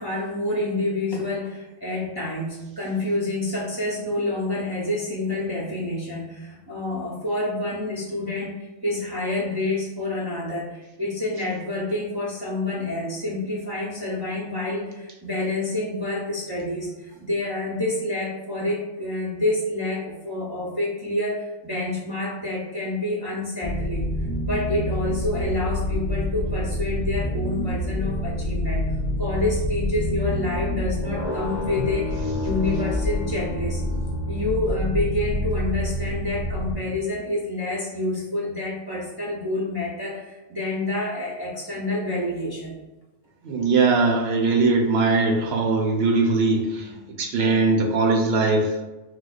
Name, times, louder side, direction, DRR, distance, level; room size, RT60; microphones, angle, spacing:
voice 1, 0.0-24.1 24.4-28.9 29.2-33.8 34.3-42.8, left 2 dB, 35° right, -6 dB, 0.4 m, -28 dB
sound 1, 23.6-36.7, left 1 dB, 40° left, 0.5 m, -27 dB
voice 2, 43.4-46.9 47.2-48.7, right 3 dB, 75° right, 2 dB, 0.9 m, -20 dB
4.5 x 2.2 x 2.4 m, 1.1 s
omnidirectional pair, 1.1 m